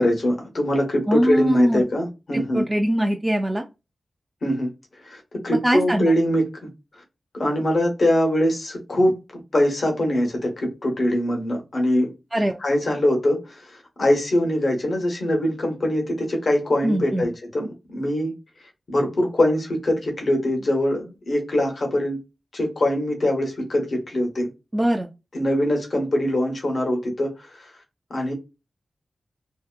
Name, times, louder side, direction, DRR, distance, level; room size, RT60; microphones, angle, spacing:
voice 1, 0.0-2.6 4.4-4.7 5.0-6.5 7.3-12.1 12.6-18.3 18.9-22.2 22.5-24.5 25.3-27.7 28.1-28.3, left 1 dB, 60° left, 0.9 m, -23 dB
voice 2, 1.1-1.8 2.3-3.6 5.6-6.1 12.3-12.6 16.8-17.2 24.7-25.1, right 1 dB, 20° right, 0.3 m, -22 dB
2.7 x 2.1 x 2.2 m
wide cardioid pair, 80°, 0 cm